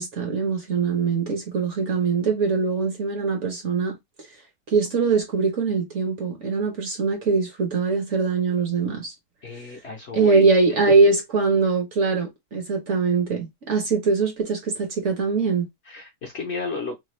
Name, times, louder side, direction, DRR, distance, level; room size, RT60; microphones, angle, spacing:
voice 1, 0.0-3.9 4.7-9.1 10.1-15.7, right 4 dB, 55° right, 1.1 m, -22 dB
voice 2, 9.4-10.5 15.9-16.9, left 4 dB, 50° left, 0.9 m, -32 dB
3.2 x 2.2 x 3.0 m
omnidirectional pair, 1.7 m